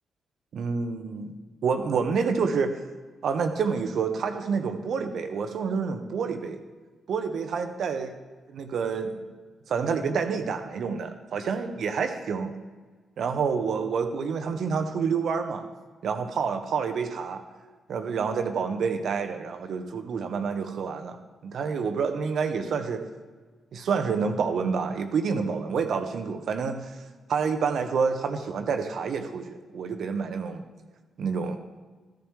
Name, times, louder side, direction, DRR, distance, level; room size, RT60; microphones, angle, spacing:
voice 1, 0.5-2.8 3.2-6.6 7.1-8.1 8.5-9.2 9.7-12.6 13.2-15.7 16.0-17.4 17.9-21.2 21.4-23.0 23.7-26.9 27.3-30.6 31.2-31.6, right 5 dB, 65° right, 6 dB, 1.0 m, -28 dB
14.0 x 10.5 x 3.2 m, 1.4 s
hypercardioid pair, 45°, 0 cm